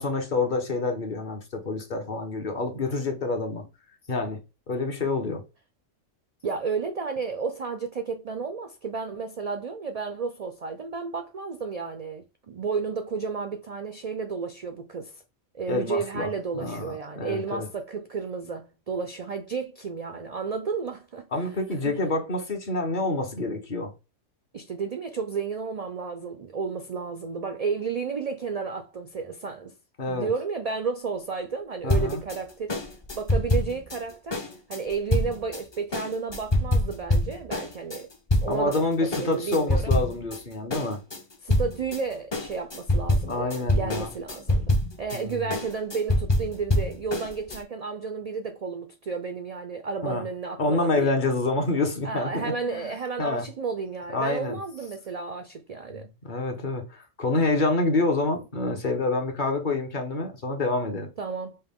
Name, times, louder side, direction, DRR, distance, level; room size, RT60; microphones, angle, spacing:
voice 1, 0.0-3.6 4.1-4.4 4.7-5.4 15.7-16.3 16.5-17.7 21.3-23.9 30.0-30.3 31.8-32.2 38.5-41.0 43.3-44.1 45.1-45.5 50.0-50.2 50.6-52.9 53.2-53.5 54.1-54.6 55.9-61.1, left 2 dB, 45° left, 0.9 m, -27 dB
voice 2, 6.4-15.2 15.5-21.3 21.8-22.0 24.5-29.7 30.0-32.8 33.1-34.4 34.7-38.1 38.4-40.0 41.4-51.1 52.0-56.1 61.2-61.6, right 5 dB, 65° right, 0.4 m, -32 dB
sound 1, 31.9-38.8 39.1-40.4 40.7-47.6, left 1 dB, 30° left, 0.5 m, -26 dB
5.4 x 2.2 x 3.5 m
omnidirectional pair, 1.3 m